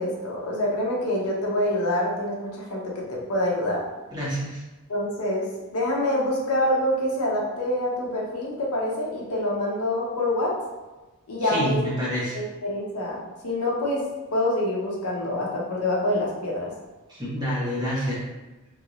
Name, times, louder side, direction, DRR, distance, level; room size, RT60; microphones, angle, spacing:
voice 1, 0.0-3.8 4.9-5.5 5.7-10.5 11.3-11.9 12.3-14.0 14.3-16.7, left 1 dB, 80° left, -3 dB, 0.8 m, -26 dB
voice 2, 4.1-4.6 11.4-12.4 17.1-18.2, equal, 20° right, -8 dB, 1.1 m, -27 dB
3.0 x 2.6 x 3.0 m, 1.1 s
head